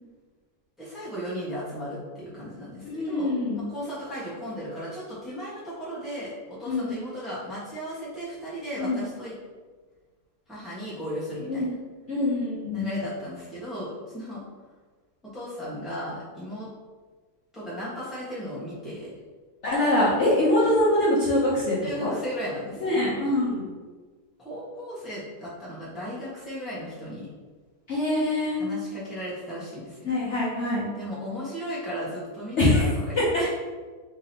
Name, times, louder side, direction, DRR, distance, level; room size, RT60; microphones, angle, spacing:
voice 1, 0.8-9.3 10.5-11.8 12.7-14.4 15.3-16.7 17.5-19.1 21.8-23.3 24.4-27.3 28.6-30.1 30.9-33.5, equal, ahead, -10 dB, 1.2 m, -36 dB
voice 2, 2.8-3.6 6.7-7.0 8.8-9.0 11.5-11.7 12.1-12.9 19.6-22.1 22.8-23.7 27.9-28.6 30.0-30.9 32.6-32.9 33.2-33.5, left 1 dB, 50° left, -8 dB, 1.0 m, -24 dB
3.8 x 3.6 x 2.9 m, 1.4 s
omnidirectional pair, 1.8 m